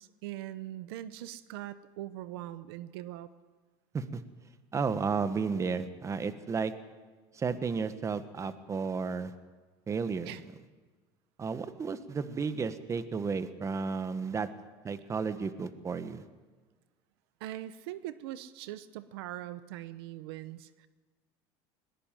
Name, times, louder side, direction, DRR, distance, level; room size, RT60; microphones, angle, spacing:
voice 1, 0.0-3.3 10.3-10.4 17.4-20.9, right 14 dB, 90° right, 14 dB, 1.0 m, -41 dB
voice 2, 4.7-6.7 7.3-9.3 9.9-10.3 11.4-14.5 14.8-16.2, right 5 dB, 25° right, 12 dB, 1.4 m, -33 dB
20.5 x 19.5 x 7.6 m, 1.3 s
supercardioid pair, 125°, 13 cm